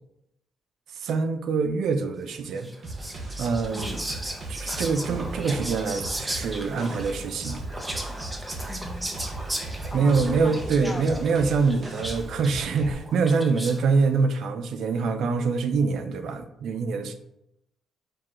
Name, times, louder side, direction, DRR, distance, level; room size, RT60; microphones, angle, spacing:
voice 1, 0.9-2.7 3.4-4.0 4.5-7.6 9.9-17.1, right 4 dB, 70° right, 8 dB, 0.4 m, -25 dB
Whispering, 2.6-13.9, right 1 dB, 15° right, 0.7 m, -36 dB
sound 1, 2.8-12.9, right 2 dB, 50° right, 0.9 m, -37 dB
voice 2, 3.7-4.2 8.7-9.1 9.9-11.2, left 2 dB, 25° left, 10 dB, 0.3 m, -39 dB
4.7 x 2.2 x 3.7 m, 0.80 s
cardioid pair, 90°, 0 cm